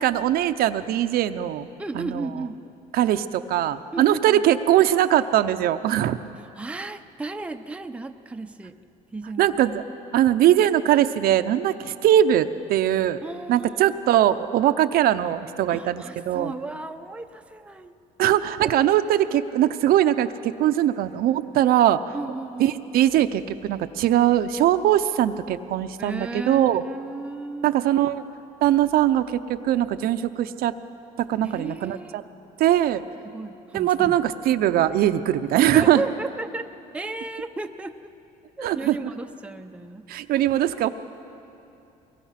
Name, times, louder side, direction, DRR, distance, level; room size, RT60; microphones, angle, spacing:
voice 1, 0.0-1.7 1.9-2.3 2.9-6.2 9.4-9.8 10.1-13.2 13.5-16.5 18.2-22.0 22.6-26.8 27.6-28.2 28.6-30.7 31.2-32.2 32.6-33.0 33.7-36.0 38.6-39.1 40.1-40.9, right 12 dB, 70° right, 10 dB, 0.7 m, -21 dB
voice 2, 1.8-2.6 3.9-4.4 6.6-8.7 9.1-9.5 13.2-14.0 15.7-17.9 22.1-22.7 26.0-27.8 31.4-32.2 33.3-34.2 35.7-36.7 36.9-38.1 38.6-40.0 40.3-40.5, right 3 dB, 5° right, 6 dB, 0.7 m, -34 dB
23.5 x 21.0 x 5.9 m, 2.7 s
cardioid pair, 130°, 16 cm